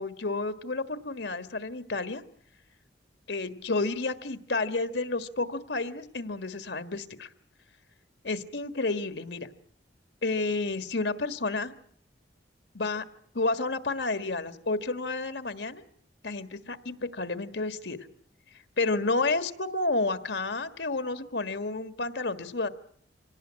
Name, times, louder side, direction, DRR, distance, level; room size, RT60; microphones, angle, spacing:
voice 1, 0.0-2.2 3.3-7.3 8.2-9.5 10.2-11.7 12.7-13.0 13.3-15.8 16.2-18.0 18.8-22.7, left 3 dB, 70° left, 11 dB, 1.6 m, -30 dB
25.5 x 18.0 x 8.8 m, 0.63 s
head